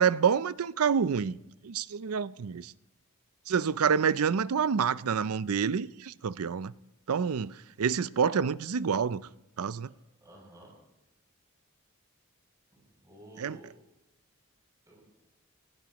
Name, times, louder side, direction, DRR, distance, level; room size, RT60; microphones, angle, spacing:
voice 1, 0.0-1.4 1.6-2.7 3.5-6.7 7.1-9.2 9.6-9.9 13.4-13.6, right 6 dB, 85° right, 0.5 m, -27 dB
voice 2, 10.2-10.7 13.0-13.7 14.9-15.0, right 1 dB, 15° right, 7.2 m, -51 dB
19.5 x 17.5 x 3.0 m
head